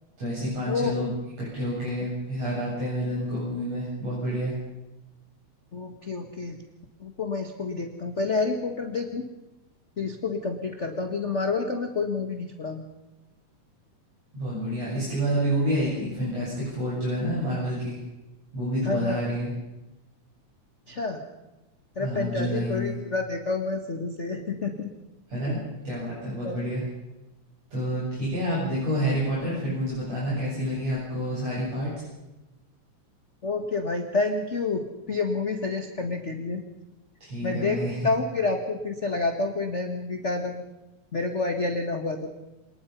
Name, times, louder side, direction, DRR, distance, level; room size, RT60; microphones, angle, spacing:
voice 1, 0.2-1.1 1.4-4.5 14.3-18.0 18.5-19.5 22.0-23.0 25.3-26.8 27.7-31.9 37.2-38.1, equal, 55° right, -8 dB, 9.3 m, -28 dB
voice 2, 5.7-6.6 7.0-9.3 10.0-12.8 18.8-19.2 20.9-21.2 21.9-24.9 26.4-26.6 33.4-36.6 37.4-40.6 41.1-42.3, left 3 dB, 30° left, 4 dB, 1.5 m, -29 dB
26.5 x 20.0 x 5.5 m, 1.0 s
omnidirectional pair, 3.4 m